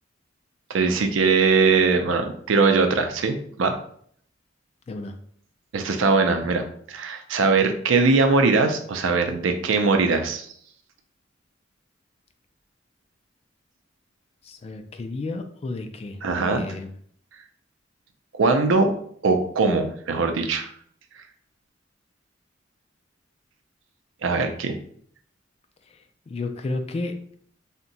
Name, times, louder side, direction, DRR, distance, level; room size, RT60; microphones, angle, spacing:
voice 1, 0.7-3.7 5.7-10.5 16.2-16.7 18.3-18.9 19.2-20.7 24.2-24.7, right 4 dB, 85° right, 6 dB, 0.5 m, -21 dB
voice 2, 14.4-16.9 25.9-26.0 26.3-27.1, left 2 dB, 30° left, 6 dB, 0.3 m, -32 dB
2.7 x 2.1 x 3.9 m, 0.62 s
head